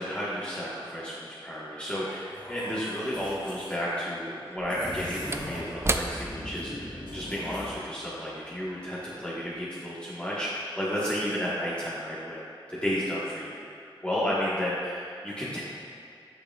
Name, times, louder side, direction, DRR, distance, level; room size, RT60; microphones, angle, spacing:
voice 1, 0.0-12.4 12.7-13.5 13.8-15.6, equal, 10° left, -9 dB, 1.4 m, -32 dB
sound 1, 2.3-3.8 4.6-5.8 6.1-7.8, left 1 dB, 50° left, 1.3 m, -40 dB
Slam / Wood, 2.9-3.0 4.4-9.1 9.4-9.6, right 2 dB, 25° right, 0.3 m, -36 dB
8.2 x 6.5 x 2.4 m, 2.4 s
cardioid pair, 45°, 9 cm